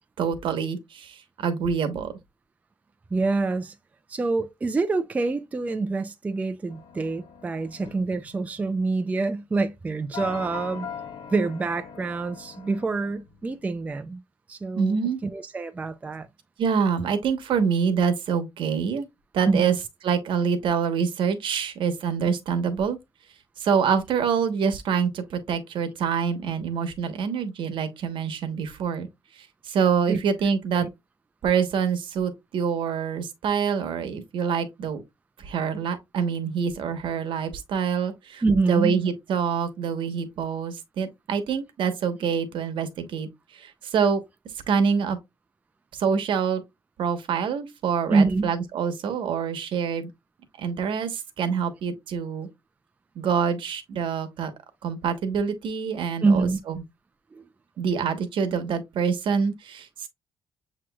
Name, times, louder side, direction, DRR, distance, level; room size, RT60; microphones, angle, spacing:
voice 1, 0.2-2.1 14.7-15.2 16.6-19.1 19.3-19.7 20.0-23.0 23.6-29.1 29.6-30.9 31.4-35.0 35.4-38.4 38.7-43.3 43.5-44.2 44.7-45.2 45.9-46.6 47.0-50.1 50.6-52.5 53.1-54.5 54.8-56.8 57.8-60.1, right 6 dB, 70° right, 1.1 m, -26 dB
voice 2, 3.1-3.7 4.1-10.9 11.3-14.2 14.5-15.0 15.2-16.3 19.5-19.7 30.1-30.2 30.8-30.9 38.4-39.0 48.1-48.5 56.2-56.6 57.3-57.4, right 3 dB, 15° right, 0.4 m, -26 dB
sound 1, 6.7-9.1 10.1-13.8, left 5 dB, 85° left, 1.3 m, -41 dB
7.3 x 3.0 x 2.2 m
cardioid pair, 150°, 9 cm